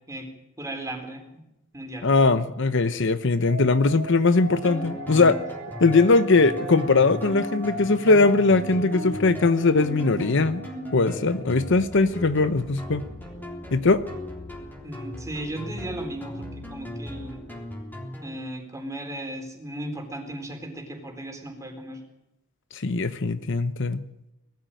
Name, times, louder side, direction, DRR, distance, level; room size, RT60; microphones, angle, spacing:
voice 1, 0.6-1.4 1.7-2.1 14.8-17.4 18.2-22.0, right 1 dB, 15° right, 3 dB, 4.1 m, -36 dB
voice 2, 2.0-5.4 5.8-10.6 10.9-13.0 13.7-14.0 22.7-24.0, left 3 dB, 65° left, 12 dB, 0.9 m, -20 dB
sound 1, 3.5-11.9, equal, 70° right, 2.7 m, -39 dB
sound 2, 4.6-18.4, left 1 dB, 10° left, 3.6 m, -37 dB
20.0 x 14.5 x 9.1 m, 0.90 s
head